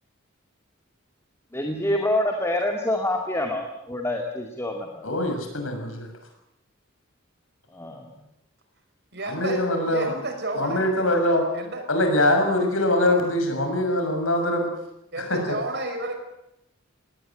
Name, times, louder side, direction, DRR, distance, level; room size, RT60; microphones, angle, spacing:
voice 1, 1.5-5.1 7.7-8.1, left 1 dB, 15° left, 2 dB, 2.3 m, -26 dB
voice 2, 5.0-6.1 9.2-10.1 10.5-11.4 11.9-14.7 15.2-15.6, left 1 dB, 85° left, 5 dB, 6.6 m, -23 dB
voice 3, 9.1-10.8 11.5-11.8 15.1-16.2, right 2 dB, 55° right, 6 dB, 5.4 m, -31 dB
20.5 x 18.5 x 9.1 m, 0.85 s
head